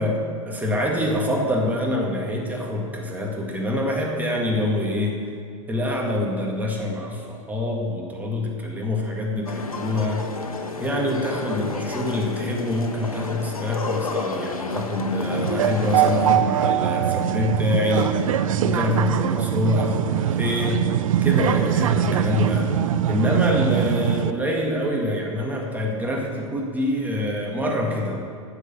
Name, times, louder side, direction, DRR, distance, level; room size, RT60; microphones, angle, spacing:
voice 1, 0.0-5.3 5.7-10.3 10.8-18.2 18.6-20.9 21.2-22.7 23.1-28.2, left 1 dB, 10° right, -1 dB, 1.9 m, -25 dB
sound 1, 9.5-16.4, left 3 dB, 90° left, 0.9 m, -30 dB
sound 2, 15.3-24.3, right 10 dB, 70° right, 0.5 m, -22 dB
9.8 x 7.0 x 6.8 m, 2.3 s
hypercardioid pair, 100°, 18 cm